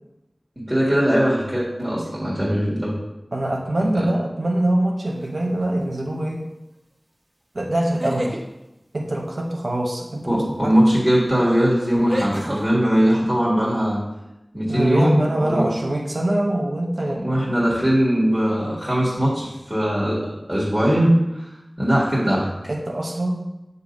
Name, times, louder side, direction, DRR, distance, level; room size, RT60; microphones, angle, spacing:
voice 1, 0.7-3.0 3.9-4.1 10.3-14.0 14.5-15.7 17.1-21.5 21.8-22.5, equal, 15° right, -7 dB, 1.7 m, -20 dB
voice 2, 3.3-6.4 7.5-8.4 8.9-10.4 14.7-17.2 22.7-23.4, right 1 dB, 75° right, -1 dB, 0.9 m, -24 dB
sound 1, 5.2-5.6 7.8-8.4 10.7-10.8 12.1-12.6, right 1 dB, 30° right, 1.0 m, -28 dB
6.8 x 2.7 x 5.3 m, 0.94 s
wide cardioid pair, 50°, 0 cm